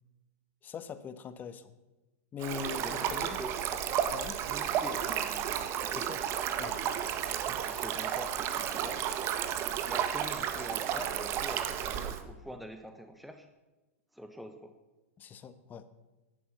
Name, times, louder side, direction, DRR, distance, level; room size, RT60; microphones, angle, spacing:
voice 1, 0.6-1.7 2.3-3.4 4.1-4.4 5.9-6.2 6.6-6.8 15.2-15.8, left 7 dB, 25° left, 13 dB, 1.2 m, -41 dB
Stream, 2.4-12.2, right 9 dB, 35° right, 1.6 m, -32 dB
voice 2, 2.8-3.5 4.4-6.1 7.4-9.1 9.8-13.5 14.1-14.7, equal, ahead, 6 dB, 1.2 m, -45 dB
14.5 x 11.5 x 8.1 m, 1.1 s
hypercardioid pair, 120°, 7 cm